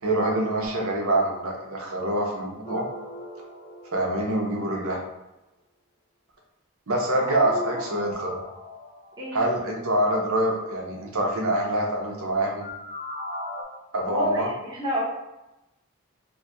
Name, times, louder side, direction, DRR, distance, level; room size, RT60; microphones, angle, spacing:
voice 1, 0.0-2.9 3.9-5.0 6.9-8.4 9.3-12.7 13.9-14.5, right 1 dB, 80° right, 0 dB, 0.7 m, -25 dB
sound 1, 2.6-4.7 6.9-9.6 12.6-13.6, left 1 dB, 40° left, 0.7 m, -38 dB
voice 2, 7.1-7.7 9.2-9.4 14.1-15.0, equal, 20° right, -8 dB, 0.8 m, -29 dB
2.7 x 2.3 x 4.1 m, 0.96 s
head